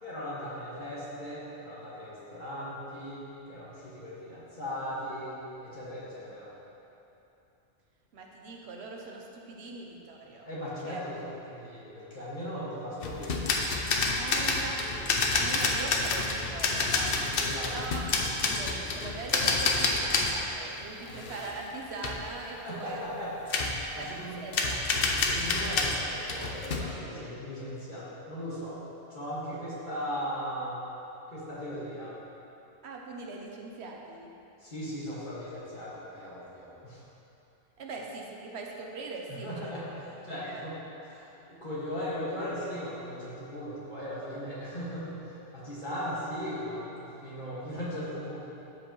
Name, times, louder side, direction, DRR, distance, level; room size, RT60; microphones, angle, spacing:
voice 1, 0.0-6.5 10.4-11.2 11.5-13.4 17.1-18.0 21.1-21.2 22.6-23.4 23.7-24.4 25.3-28.8 29.1-30.8 31.3-32.1 34.6-37.0 39.3-40.8 41.1-48.4, equal, 45° left, -9 dB, 2.0 m, -38 dB
voice 2, 8.1-10.5 10.8-11.0 14.2-23.0 23.9-24.1 24.4-24.8 32.8-34.3 37.8-39.7 40.3-40.6, right 3 dB, 70° right, 0 dB, 1.0 m, -41 dB
sound 1, 13.0-20.4 20.8-21.8 22.0-22.2 23.5-23.8 24.5-26.8, left 3 dB, 60° left, 0.8 m, -28 dB
12.5 x 4.9 x 3.1 m, 2.9 s
omnidirectional pair, 1.2 m